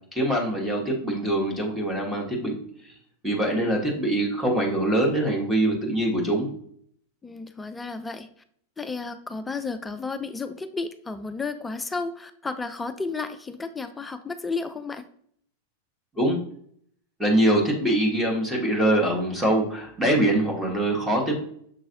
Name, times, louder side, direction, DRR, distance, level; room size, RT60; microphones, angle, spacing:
voice 1, 0.1-2.9 3.2-6.5 16.1-16.4 17.2-21.4, right 1 dB, 5° right, -1 dB, 1.3 m, -23 dB
voice 2, 7.2-8.3 8.8-15.0, left 4 dB, 10° left, 9 dB, 0.3 m, -32 dB
6.6 x 3.1 x 2.6 m, 0.64 s
figure-of-eight pair, 90°, 0 cm